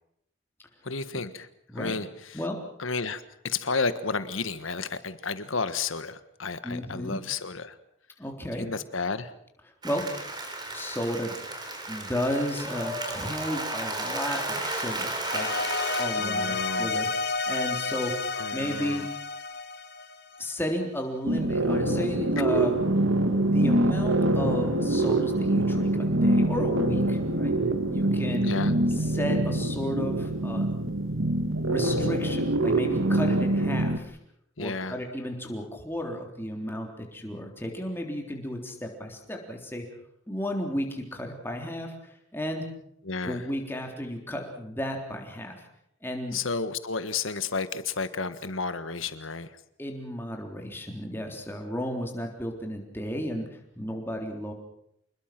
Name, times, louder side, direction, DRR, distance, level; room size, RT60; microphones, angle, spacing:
voice 1, 0.8-1.5 1.7-2.4 2.8-7.8 8.6-9.3 16.1-16.9 18.3-19.1 28.4-28.7 34.6-35.0 43.0-43.4 46.3-49.5, left 4 dB, 90° left, 12 dB, 1.5 m, -32 dB
voice 2, 6.6-7.2 8.2-8.7 9.8-10.1 10.7-11.4 11.9-15.5 16.0-18.1 18.5-19.1 20.4-22.8 23.4-27.6 27.9-28.6 29.0-30.7 31.6-34.2 34.6-39.9 40.3-42.7 43.2-45.6 46.0-46.4 49.8-54.5, equal, 10° left, 2 dB, 3.7 m, -33 dB
Applause, 9.8-16.0, right 2 dB, 20° right, 4.1 m, -33 dB
sound 1, 15.2-20.5, left 3 dB, 55° left, 1.8 m, -31 dB
sound 2, 21.3-34.0, right 1 dB, 85° right, 1.9 m, -25 dB
27.0 x 21.0 x 6.1 m, 0.75 s
head